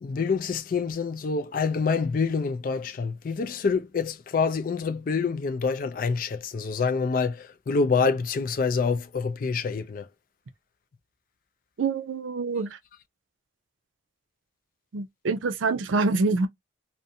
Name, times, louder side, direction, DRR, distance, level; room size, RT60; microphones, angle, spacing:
voice 1, 0.0-10.1, left 5 dB, 45° left, 0.3 m, -26 dB
voice 2, 11.8-12.7 14.9-16.5, right 3 dB, 85° right, 0.5 m, -25 dB
2.5 x 2.1 x 2.7 m
head